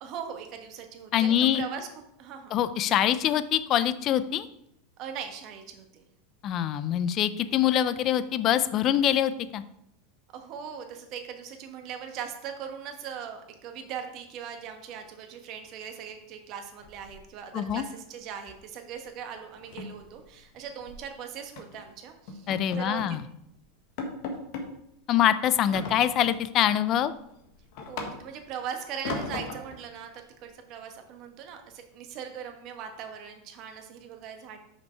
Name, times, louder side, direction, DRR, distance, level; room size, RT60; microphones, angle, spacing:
voice 1, 0.0-1.9 2.2-2.6 5.0-6.0 10.3-23.2 27.9-34.6, right 7 dB, 50° right, 5 dB, 1.3 m, -40 dB
voice 2, 1.1-1.6 2.5-4.5 6.4-9.6 17.5-17.8 22.5-23.2 25.1-27.1, left 10 dB, 45° left, 14 dB, 0.5 m, -24 dB
sound 1, 16.8-17.6 17.9-18.2 18.5-18.7 19.0-19.1 19.5-21.0 21.6-21.8 22.3-23.2 23.6-23.7 24.0-24.7 25.7-26.5 26.9-28.5 29.0-29.8, left 3 dB, 60° left, 1.3 m, -38 dB
5.9 x 5.4 x 4.5 m, 0.77 s
hypercardioid pair, 110°, 0 cm